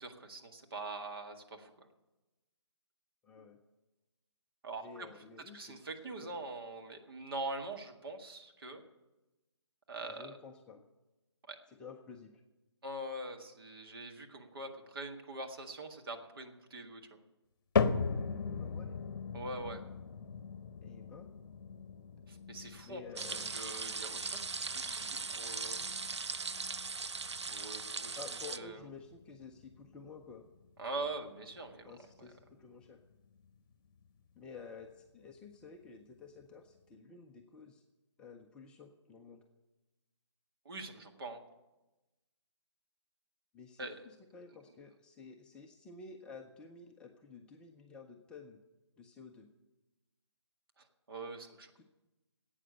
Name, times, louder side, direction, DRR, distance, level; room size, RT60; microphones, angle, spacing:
voice 1, 0.0-1.9 4.6-5.1 5.5-8.8 9.9-10.4 11.5-11.6 12.8-17.2 19.3-19.8 22.3-23.0 23.3-24.5 24.7-25.9 26.8-27.2 27.5-28.1 28.5-28.8 30.8-31.9 32.2-32.3 40.7-41.4 43.8-44.0 50.8-51.8, right 2 dB, 55° right, 4 dB, 1.9 m, -43 dB
voice 2, 3.2-3.6 4.8-5.8 6.2-6.4 10.0-10.8 11.7-12.3 18.6-18.9 20.8-21.3 22.8-23.5 28.2-30.4 31.9-33.0 34.4-37.8 38.2-39.4 43.5-48.6 49.0-49.5 51.8-51.9, left 4 dB, 5° left, 1 dB, 0.4 m, -51 dB
sound 1, 17.7-34.1 34.4-34.9 35.5-35.6 36.4-36.5, left 5 dB, 50° left, 0.9 m, -40 dB
sound 2, 23.2-28.6, right 4 dB, 75° right, 0.6 m, -39 dB
12.5 x 8.7 x 9.6 m, 1.1 s
figure-of-eight pair, 145°, 15 cm